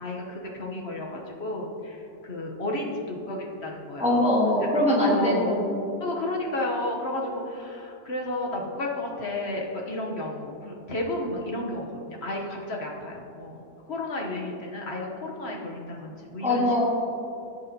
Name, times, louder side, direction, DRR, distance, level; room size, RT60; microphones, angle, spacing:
voice 1, 0.0-2.0 2.2-4.3 4.6-4.7 5.1-5.6 6.0-16.7, left 2 dB, 45° left, -1 dB, 1.0 m, -32 dB
voice 2, 4.0-5.8 16.4-16.8, left 1 dB, 5° right, -5 dB, 1.4 m, -22 dB
16.0 x 6.7 x 2.8 m, 2.7 s
omnidirectional pair, 2.0 m